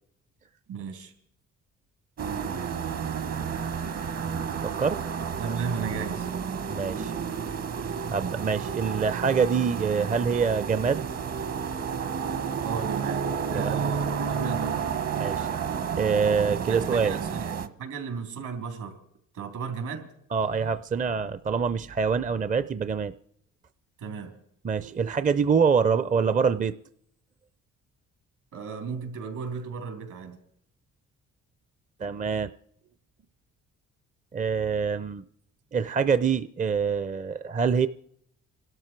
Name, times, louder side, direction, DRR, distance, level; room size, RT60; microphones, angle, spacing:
voice 1, 0.7-1.1 5.4-6.3 12.6-14.8 16.7-19.0 19.3-20.1 24.0-24.3 28.5-30.4, right 5 dB, 75° right, 3.6 m, -35 dB
sound 1, 2.2-17.7, right 6 dB, 55° right, 1.2 m, -31 dB
voice 2, 4.6-5.0 6.7-7.1 8.1-11.1 13.5-13.8 15.1-15.6 16.0-17.2 20.3-23.1 24.6-26.8 32.0-32.5 34.3-35.2 35.7-37.9, right 6 dB, 25° right, 0.5 m, -25 dB
25.0 x 12.5 x 4.6 m
cardioid pair, 90°, 30 cm